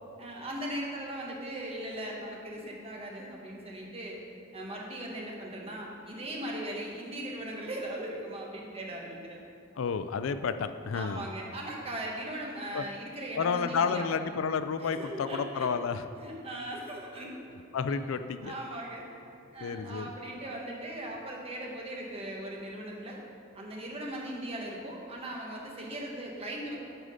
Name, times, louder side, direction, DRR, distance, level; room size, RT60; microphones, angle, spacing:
voice 1, 0.2-4.2 4.5-9.4 10.9-14.1 14.8-15.7 16.2-17.3 17.9-18.0 18.4-19.1 19.5-23.2 23.5-26.8, right 1 dB, 30° right, -2 dB, 1.4 m, -39 dB
voice 2, 9.8-11.3 12.7-12.8 13.4-16.0 17.7-18.5 19.6-20.1, left 6 dB, 80° left, 11 dB, 0.4 m, -31 dB
9.1 x 5.0 x 6.5 m, 2.5 s
head